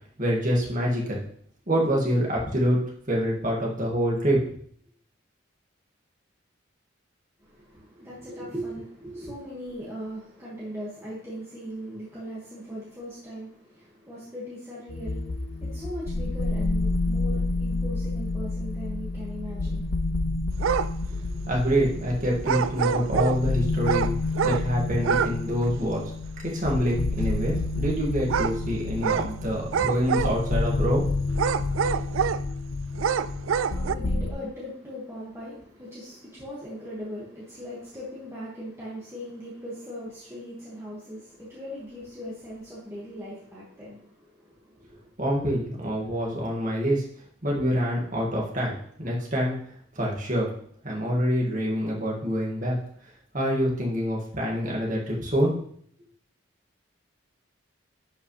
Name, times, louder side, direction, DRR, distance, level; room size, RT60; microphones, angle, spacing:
voice 1, 0.2-1.2 1.7-2.8 3.1-4.4 21.1-24.1 24.4-26.0 26.4-31.1 45.2-47.1 47.4-49.6 50.0-50.5 50.8-52.8 53.3-55.5, equal, 40° right, 2.1 m, -26 dB
voice 2, 7.5-19.9 32.9-45.0, equal, 15° right, 2.0 m, -39 dB
sound 1, 14.9-34.3, left 2 dB, 65° left, 0.8 m, -29 dB
sound 2, 20.6-20.9 22.4-23.4 23.8-24.7 25.0-25.4 25.6-25.7 28.3-28.6 29.0-29.3 29.7-30.6 31.3-32.4 33.0-33.9, right 7 dB, 80° right, 0.3 m, -26 dB
11.0 x 5.6 x 3.4 m
head